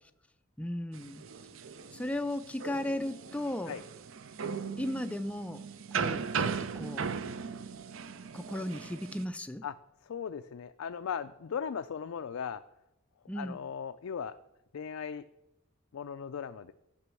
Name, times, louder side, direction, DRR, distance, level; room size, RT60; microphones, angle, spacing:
voice 1, 0.6-1.2 1.9-3.8 4.8-7.1 8.3-9.6 13.3-13.6, left 1 dB, 5° left, 9 dB, 0.3 m, -36 dB
sound 1, 0.9-9.2, right 6 dB, 70° right, 0.6 m, -38 dB
voice 2, 10.0-12.6 13.4-14.3 14.7-15.2 15.9-16.7, left 7 dB, 75° left, 9 dB, 0.4 m, -37 dB
11.0 x 6.0 x 7.0 m, 0.88 s
head